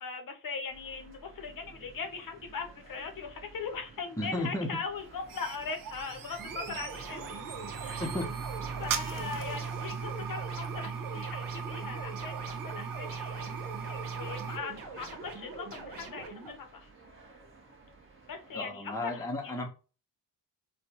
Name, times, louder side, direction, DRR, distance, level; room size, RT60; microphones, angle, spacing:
voice 1, 0.0-7.4 7.8-8.1 8.8-16.9 18.3-19.7, left 5 dB, 50° left, 5 dB, 0.8 m, -40 dB
sound 1, 0.7-18.6, right 3 dB, 30° right, 1.1 m, -51 dB
voice 2, 4.2-4.7 8.0-8.3 18.5-19.7, left 1 dB, 10° left, 2 dB, 0.7 m, -33 dB
sound 2, 5.0-14.6, right 7 dB, 50° right, 0.6 m, -38 dB
sound 3, 6.4-16.5, right 3 dB, 70° right, 1.1 m, -44 dB
4.3 x 2.2 x 2.9 m, 0.34 s
cardioid pair, 80°, 44 cm